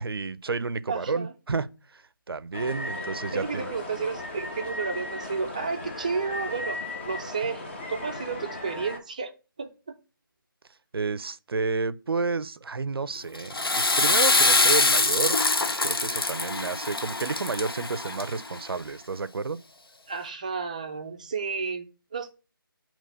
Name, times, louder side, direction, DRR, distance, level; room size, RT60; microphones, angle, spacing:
voice 1, 0.0-1.7 1.9-3.7 10.9-15.4 15.7-19.6, right 4 dB, 85° right, 0.4 m, -31 dB
voice 2, 0.9-1.3 3.3-6.8 7.1-7.6 7.9-9.3 9.6-9.7 20.1-22.3, right 5 dB, 20° right, 0.4 m, -32 dB
sound 1, 2.5-9.0, left 2 dB, 30° left, 0.9 m, -36 dB
Water / Toilet flush, 13.3-18.6, left 3 dB, 80° left, 0.8 m, -24 dB
6.6 x 3.0 x 5.4 m
figure-of-eight pair, 165°, 12 cm